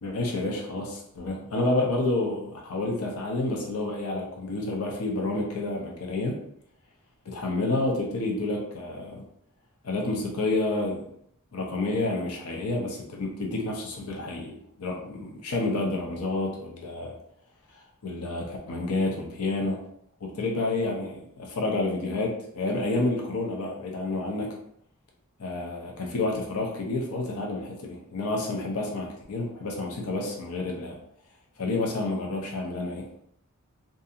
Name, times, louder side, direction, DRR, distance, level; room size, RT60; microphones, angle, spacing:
voice 1, 0.0-6.4 7.3-9.2 9.8-11.0 11.5-17.1 18.0-19.8 20.2-24.5 25.4-31.0 31.6-33.2, left 2 dB, 75° left, 0 dB, 0.6 m, -29 dB
2.6 x 2.4 x 2.6 m, 0.69 s
head